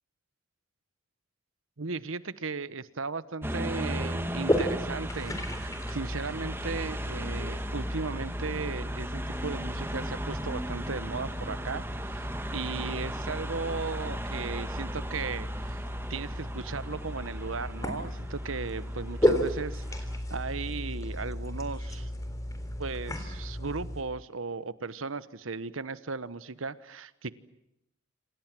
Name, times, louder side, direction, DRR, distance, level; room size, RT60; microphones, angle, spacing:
voice 1, 1.8-15.8 16.1-22.1 22.8-27.3, right 4 dB, 90° right, 16 dB, 1.1 m, -36 dB
sound 1, 3.4-20.2, right 1 dB, 10° right, 1.5 m, -38 dB
sound 2, 4.3-24.0, equal, 15° left, 3.7 m, -34 dB
27.5 x 27.0 x 7.7 m, 0.82 s
head